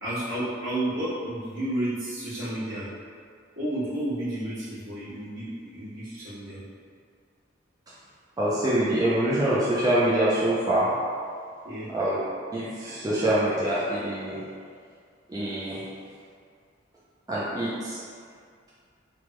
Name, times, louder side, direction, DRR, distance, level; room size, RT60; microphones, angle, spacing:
voice 1, 0.0-2.9 3.6-6.6 11.6-11.9, right 1 dB, 70° right, -12 dB, 1.4 m, -31 dB
voice 2, 8.4-10.9 11.9-12.2 12.5-14.4 15.3-15.8 17.3-18.0, right 1 dB, 20° right, -9 dB, 0.4 m, -25 dB
3.4 x 2.2 x 3.0 m, 2.2 s
head